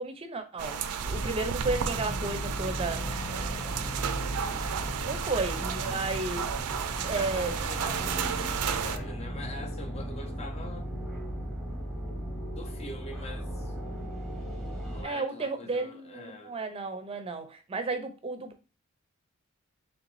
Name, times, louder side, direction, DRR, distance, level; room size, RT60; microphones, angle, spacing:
voice 1, 0.0-3.0 5.0-6.5 7.0-7.6 15.0-18.7, right 3 dB, 25° right, 0.5 m, -33 dB
sound 1, 0.6-9.0, right 7 dB, 85° right, 0.4 m, -33 dB
sound 2, 1.0-15.0, equal, ahead, 0.9 m, -36 dB
voice 2, 5.8-6.4 7.1-10.9 12.5-13.8 14.9-16.6, left 2 dB, 30° left, 0.6 m, -44 dB
3.8 x 3.4 x 3.1 m
head